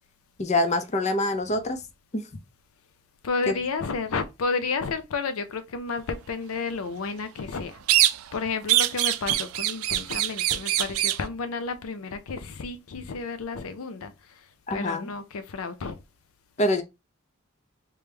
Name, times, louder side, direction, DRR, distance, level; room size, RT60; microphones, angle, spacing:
voice 1, 0.4-1.8 2.1-2.2 14.7-15.1 16.6-16.8, left 1 dB, 35° left, 0.6 m, -25 dB
voice 2, 3.2-14.5 14.7-16.0, left 4 dB, 80° left, 0.5 m, -31 dB
sound 1, 7.9-8.4 8.7-11.3, right 14 dB, 80° right, 0.4 m, -24 dB
3.3 x 3.0 x 3.3 m
head